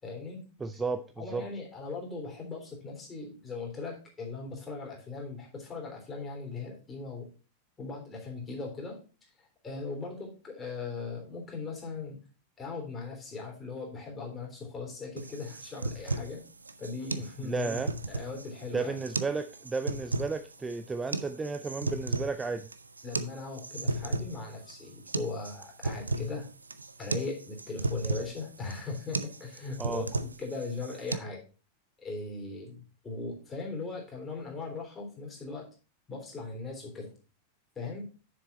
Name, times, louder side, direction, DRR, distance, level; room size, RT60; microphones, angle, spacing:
voice 1, 0.0-0.4 1.2-7.3 7.8-12.2 12.6-16.4 16.8-17.8 18.1-19.0 23.0-26.5 27.0-30.1 30.4-31.4 32.0-35.7 36.1-37.1 37.8-38.0, left 3 dB, 20° left, 0 dB, 3.5 m, -39 dB
voice 2, 0.6-1.4 17.4-17.9 18.7-22.7 29.8-30.0, right 4 dB, 15° right, 9 dB, 0.5 m, -33 dB
sound 1, 15.2-31.2, right 2 dB, 80° right, 0.5 m, -35 dB
7.0 x 6.9 x 4.2 m, 0.35 s
figure-of-eight pair, 90°, 0 cm